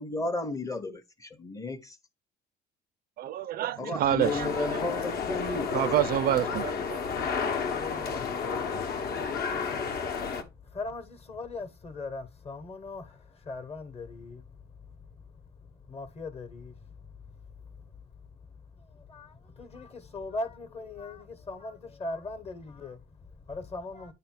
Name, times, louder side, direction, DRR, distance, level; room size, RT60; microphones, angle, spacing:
voice 1, 0.0-2.0 3.8-5.7, left 2 dB, 15° left, 0.8 m, -33 dB
voice 2, 3.2-4.9 5.7-7.0, right 11 dB, 50° right, 0.4 m, -28 dB
sound 1, 4.2-10.4, left 5 dB, 50° left, 1.0 m, -31 dB
voice 3, 7.1-24.1, left 3 dB, 30° left, 1.2 m, -41 dB
9.4 x 3.3 x 4.4 m
cardioid pair, 140°, 20 cm